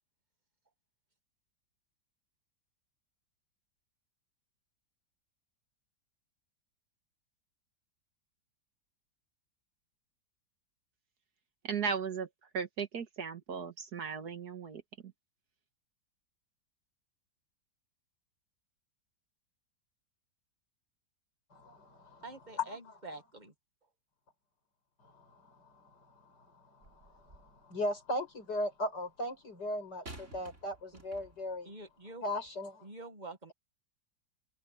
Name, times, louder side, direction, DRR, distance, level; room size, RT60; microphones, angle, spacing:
voice 1, 11.6-12.3 12.5-14.8, right 6 dB, 65° right, 2.0 m, -36 dB
voice 2, 21.5-22.2 22.6-22.8 25.0-31.7 32.2-32.9, left 1 dB, 75° left, 6.7 m, -38 dB
voice 3, 22.2-23.5 31.6-32.3 32.8-33.5, right 2 dB, 25° right, 1.8 m, -46 dB
sound 1, 26.8-27.6 30.1-31.6 32.4-32.5, right 2 dB, 45° right, 4.6 m, -52 dB
omnidirectional pair, 1.8 m